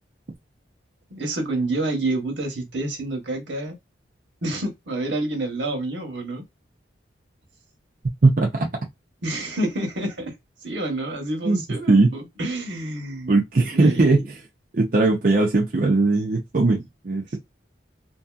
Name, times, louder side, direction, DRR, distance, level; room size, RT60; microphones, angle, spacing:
voice 1, 1.1-3.8 4.4-6.4 9.2-10.3 10.6-13.4 13.7-14.3 17.3-17.4, right 2 dB, 80° right, 1.1 m, -28 dB
voice 2, 8.2-8.7 11.4-11.6 11.9-12.1 13.3-14.2 14.7-17.4, right 3 dB, 45° right, 0.5 m, -19 dB
2.7 x 2.6 x 2.4 m
head